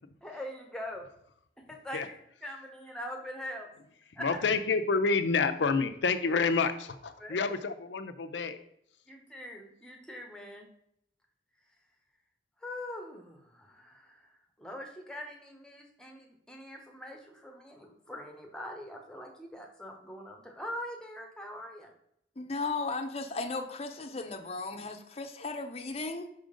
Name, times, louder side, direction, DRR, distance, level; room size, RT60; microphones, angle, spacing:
voice 1, 0.2-1.1 1.7-3.7 4.2-4.4 7.2-7.4 9.1-10.7 12.6-14.3 14.6-21.9, left 1 dB, 5° left, 2 dB, 1.0 m, -43 dB
voice 2, 4.2-8.6, left 4 dB, 85° left, 10 dB, 0.6 m, -28 dB
voice 3, 22.4-26.3, left 3 dB, 35° left, 4 dB, 0.6 m, -36 dB
5.7 x 3.8 x 5.1 m, 0.72 s
head